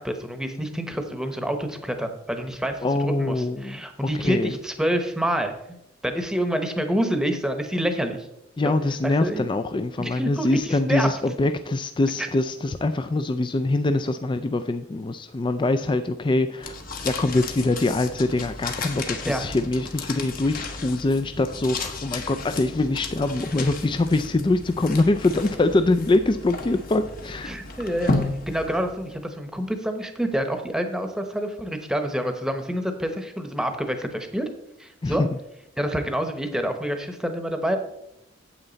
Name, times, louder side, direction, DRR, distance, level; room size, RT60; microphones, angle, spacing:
voice 1, 0.0-3.3 3.6-5.8 6.0-8.3 8.6-8.7 9.0-9.5 10.0-11.1 12.2-12.3 19.2-19.5 27.5-28.2 28.5-34.4 34.8-35.2 35.8-37.8, equal, 5° right, 6 dB, 0.9 m, -27 dB
voice 2, 2.8-4.5 8.6-16.8 17.0-27.5 35.0-35.3, left 2 dB, 25° left, 9 dB, 0.4 m, -24 dB
sound 1, 16.6-29.2, left 3 dB, 45° left, 1.2 m, -33 dB
8.9 x 8.1 x 4.0 m, 0.82 s
head